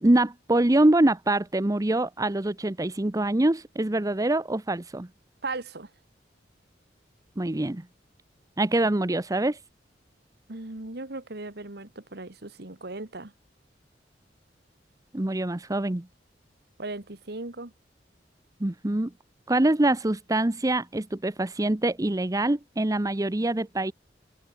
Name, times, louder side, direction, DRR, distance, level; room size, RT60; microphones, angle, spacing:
voice 1, 0.0-5.1 7.4-7.9 8.6-9.6 15.1-16.1 18.6-19.1 19.5-23.9, right 1 dB, 20° right, 0.8 m, -24 dB
voice 2, 5.4-5.9 10.5-13.3 16.8-17.7, right 3 dB, 65° right, 1.9 m, -37 dB
head